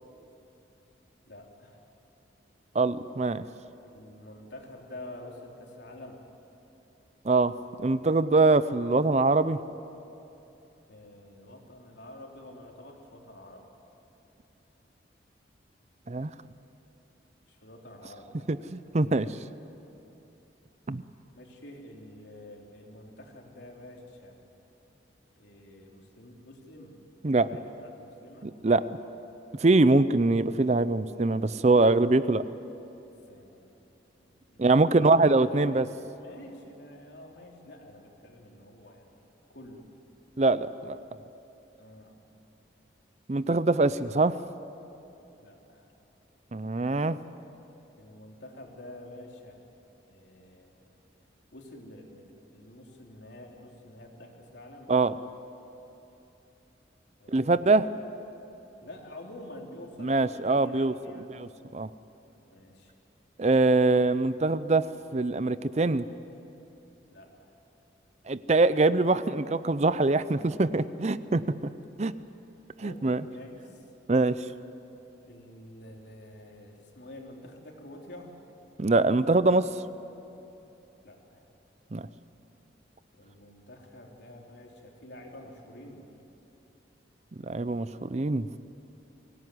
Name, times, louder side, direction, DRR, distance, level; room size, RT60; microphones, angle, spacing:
voice 1, 1.3-1.9 3.8-6.2 10.9-13.7 17.5-18.5 21.3-24.4 25.4-27.0 27.4-28.5 33.0-33.7 34.2-35.7 36.2-39.2 39.5-39.9 41.8-42.2 45.4-45.9 48.0-49.6 50.1-50.9 51.5-54.9 57.2-57.7 58.8-61.4 62.5-62.9 67.1-67.5 72.8-73.9 75.2-78.4 81.0-81.4 83.1-86.1, left 1 dB, 75° left, 0 dB, 3.7 m, -48 dB
voice 2, 2.7-3.4 7.2-7.5 7.8-9.6 16.1-16.3 18.5-19.3 20.9-21.0 27.2-27.5 28.4-28.8 29.6-32.4 34.6-35.9 40.4-41.0 43.3-44.4 46.5-47.2 54.9-55.1 57.3-57.9 60.0-60.9 61.3-61.9 63.4-64.9 65.1-66.0 68.3-71.4 72.0-72.1 72.8-73.2 74.1-74.4 78.8-79.7 81.9-82.0 87.4-88.5, right 3 dB, 40° right, 15 dB, 0.5 m, -23 dB
23.5 x 18.0 x 9.6 m, 3.0 s
head